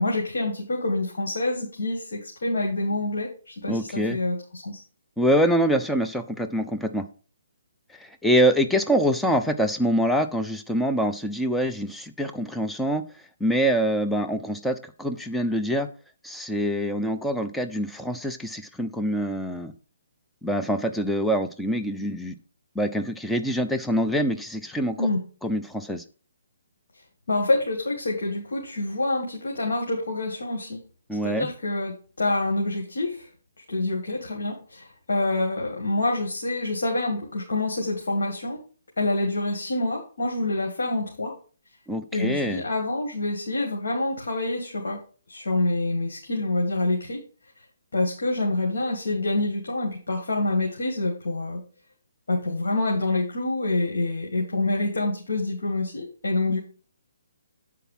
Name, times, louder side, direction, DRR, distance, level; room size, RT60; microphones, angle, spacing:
voice 1, 0.0-4.8 25.0-25.2 27.3-30.8 31.2-33.3 33.7-38.6 39.0-41.3 42.1-45.0 45.3-47.2 47.9-51.6 52.3-56.6, left 2 dB, 75° left, 0 dB, 2.0 m, -26 dB
voice 2, 3.7-4.2 5.2-7.0 8.0-13.0 13.4-15.9 16.2-19.7 20.4-22.4 22.8-25.1 25.4-26.0 31.1-31.5 41.9-42.6, equal, 5° left, 6 dB, 0.6 m, -25 dB
8.1 x 4.7 x 5.7 m, 0.39 s
hypercardioid pair, 150°, 0 cm